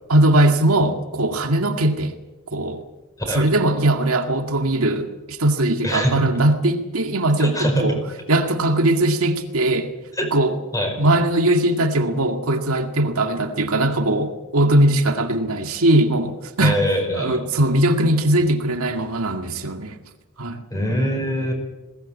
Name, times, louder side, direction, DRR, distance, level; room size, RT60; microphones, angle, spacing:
voice 1, 0.1-2.1 2.5-2.8 3.3-8.0 8.3-9.9 10.3-10.6 11.0-16.8 17.1-20.0 20.4-20.6, right 1 dB, 75° right, 5 dB, 2.1 m, -20 dB
voice 2, 5.8-6.2 7.4-7.8 10.2-10.3 10.7-11.0 16.6-17.4 20.7-21.5, equal, 15° left, 4 dB, 5.1 m, -23 dB
20.5 x 18.0 x 8.6 m, 1.1 s
head